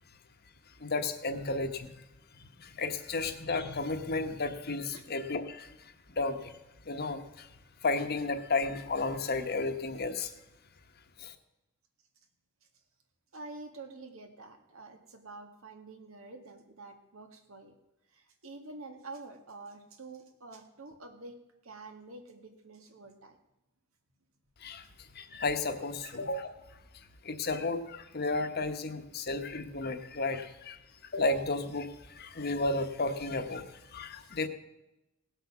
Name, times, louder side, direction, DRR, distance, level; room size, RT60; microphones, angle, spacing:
voice 1, 0.8-1.9 2.4-5.7 6.1-6.6 6.9-7.5 7.8-10.3 11.2-11.3 24.6-24.9 25.1-26.5 27.2-30.8 31.1-34.5, left 3 dB, 50° left, 8 dB, 1.1 m, -33 dB
voice 2, 13.3-17.7 18.1-23.4 26.0-26.1, right 3 dB, 75° right, 5 dB, 1.9 m, -48 dB
17.5 x 8.0 x 6.0 m, 0.96 s
head